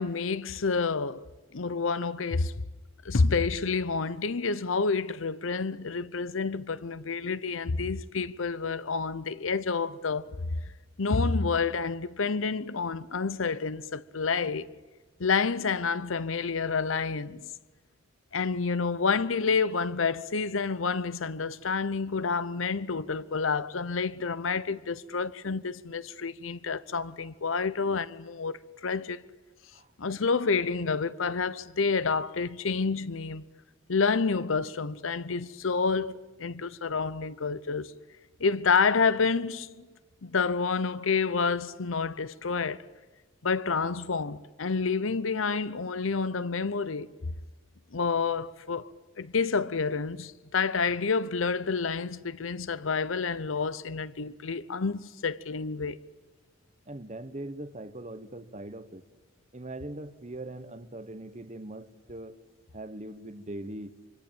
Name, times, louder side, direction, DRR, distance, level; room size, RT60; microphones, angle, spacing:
voice 1, 0.0-2.5 3.0-10.6 11.0-14.7 15.2-17.5 18.3-29.2 30.0-33.4 33.9-37.9 38.4-39.9 40.2-42.8 43.4-47.1 47.9-48.9 49.2-56.0, left 4 dB, 80° left, 0.8 m, -29 dB
voice 2, 56.9-59.0 59.5-62.4 62.7-63.9, right 1 dB, 35° right, 1.1 m, -41 dB
25.0 x 24.5 x 8.8 m
head